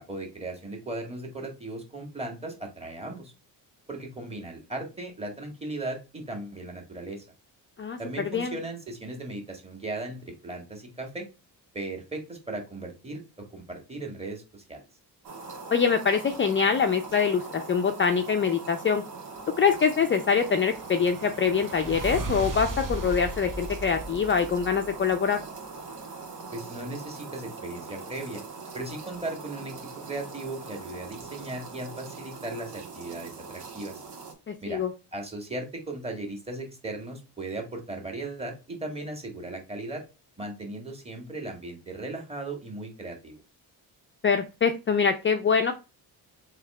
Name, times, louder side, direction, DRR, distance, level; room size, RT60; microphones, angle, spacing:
voice 1, 0.0-3.3 3.9-7.3 8.0-11.3 11.7-13.2 13.5-14.8 26.5-28.4 28.7-29.8 30.1-34.0 34.6-34.8 35.1-40.0 40.4-43.4, right 2 dB, 15° right, 1 dB, 1.8 m, -37 dB
sound 1, 15.2-34.3, right 4 dB, 70° right, 1.6 m, -42 dB
voice 2, 15.7-19.0 19.6-25.4 34.5-34.9 44.2-45.7, left 6 dB, 30° left, 6 dB, 0.5 m, -24 dB
sound 2, 20.2-25.2, right 2 dB, 50° right, 1.4 m, -36 dB
3.4 x 3.2 x 4.8 m, 0.29 s
cardioid pair, 90°, 40 cm